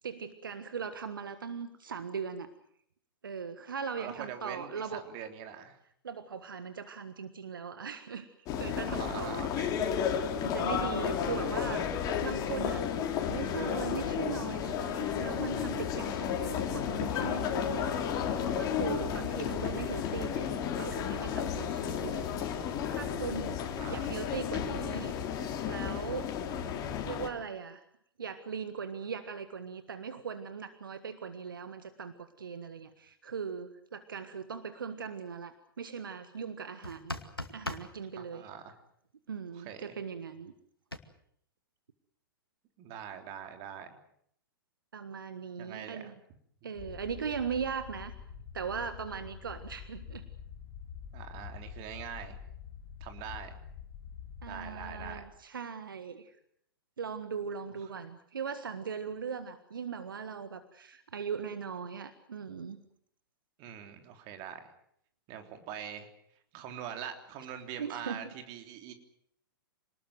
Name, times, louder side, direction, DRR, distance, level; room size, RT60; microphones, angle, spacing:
voice 1, 0.0-2.5 3.2-5.0 6.0-8.3 8.5-9.5 10.4-11.9 12.2-12.9 13.3-17.9 18.3-22.3 22.6-25.1 25.7-26.3 27.0-27.8 28.2-37.1 37.5-38.5 39.3-40.5 44.9-46.2 46.6-48.1 48.5-50.3 54.4-56.4 57.0-62.8 67.8-68.2, right 6 dB, 65° right, 11 dB, 1.6 m, -39 dB
voice 2, 4.0-5.8 8.9-9.8 23.8-24.1 38.2-38.6 39.5-40.0 42.8-44.0 45.6-46.1 51.1-52.4 53.0-53.6 54.5-55.2 63.6-64.7 65.3-66.1 66.5-68.9, right 9 dB, 35° right, 6 dB, 3.5 m, -43 dB
sound 1, 8.5-27.3, left 8 dB, 30° left, 3.6 m, -33 dB
sound 2, 36.8-37.9 40.9-41.0, left 1 dB, 90° left, 2.3 m, -38 dB
sound 3, 46.7-55.2, left 8 dB, 45° left, 3.3 m, -46 dB
27.0 x 19.5 x 7.8 m, 0.70 s
figure-of-eight pair, 105°, 12 cm